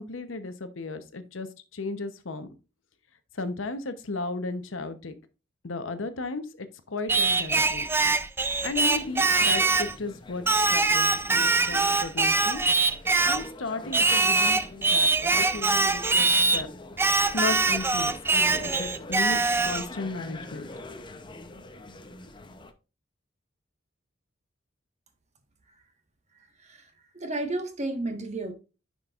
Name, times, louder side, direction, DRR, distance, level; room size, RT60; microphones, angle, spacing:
voice 1, 0.0-2.5 3.3-5.1 5.6-7.9 8.6-10.4 10.7-12.6 13.2-14.6 14.9-16.3 16.5-16.7 17.3-20.7, left 3 dB, 80° left, 0.9 m, -35 dB
Singing, 7.1-10.0 10.5-13.5 13.9-16.6 17.0-19.9, right 3 dB, 10° right, 0.4 m, -23 dB
sound 1, 8.7-22.7, left 2 dB, 25° left, 0.6 m, -44 dB
voice 2, 26.4-28.5, right 2 dB, 35° right, 1.3 m, -33 dB
10.0 x 5.3 x 2.4 m
head